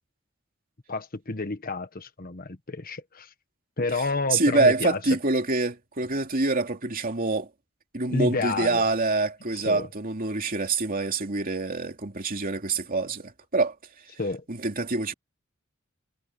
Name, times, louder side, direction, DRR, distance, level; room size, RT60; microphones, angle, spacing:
voice 1, 0.9-3.3 3.8-5.0 8.1-8.8 9.5-9.9 14.2-14.4, left 3 dB, 45° left, 1.5 m, -30 dB
voice 2, 4.3-7.5 7.9-13.7 14.5-15.1, right 3 dB, 45° right, 2.8 m, -25 dB
head